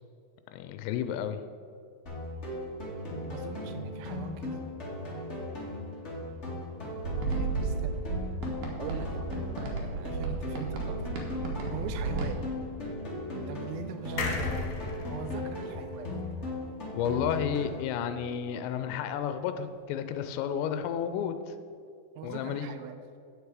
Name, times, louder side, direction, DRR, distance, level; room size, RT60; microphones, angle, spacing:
voice 1, 0.5-1.4 16.9-21.5 22.2-22.7, left 8 dB, 90° left, 9 dB, 2.8 m, -32 dB
sound 1, 2.1-18.1, left 1 dB, 45° left, 0.9 m, -37 dB
voice 2, 3.3-4.6 7.2-8.1 8.8-9.3 9.6-11.1 11.4-12.4 13.3-14.7 15.1-16.1 22.2-23.0, right 7 dB, 90° right, 8 dB, 3.0 m, -41 dB
sound 2, 7.0-12.3, right 4 dB, 60° right, 2.4 m, -33 dB
sound 3, 14.2-17.7 18.0-18.1 18.3-18.4, left 4 dB, 65° left, 2.7 m, -37 dB
9.4 x 8.2 x 4.8 m, 2.5 s
omnidirectional pair, 5.0 m